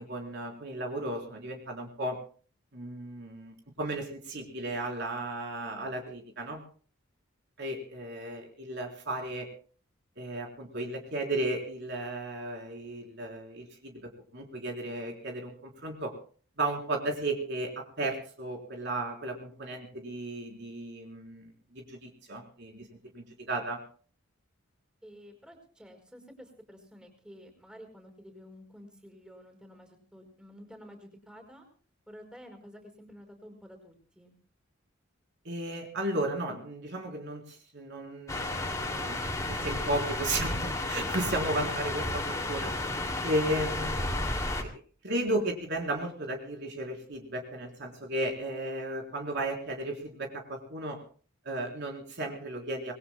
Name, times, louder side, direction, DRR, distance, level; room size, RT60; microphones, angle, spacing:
voice 1, 0.0-2.2 2.7-6.6 7.6-9.5 10.2-16.1 16.6-22.9 23.1-23.8 35.4-42.9 43.2-44.4 44.6-44.7 45.0-51.0 51.4-52.9, right 1 dB, 55° right, 1 dB, 3.8 m, -34 dB
voice 2, 25.0-31.7 32.1-34.4, equal, 5° right, 4 dB, 5.2 m, -51 dB
sound 1, 38.3-44.6, left 2 dB, 15° left, 2.5 m, -32 dB
26.5 x 21.5 x 2.2 m, 0.42 s
head